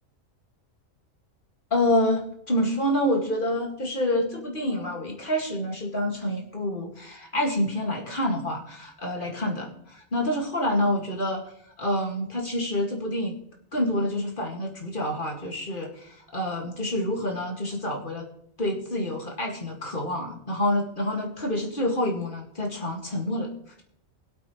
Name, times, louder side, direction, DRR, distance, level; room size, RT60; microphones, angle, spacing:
voice 1, 1.7-11.4 11.8-13.3 13.7-18.3 18.6-23.5, left 1 dB, 40° left, 0 dB, 2.3 m, -27 dB
21.5 x 8.1 x 3.2 m, 0.72 s
omnidirectional pair, 1.4 m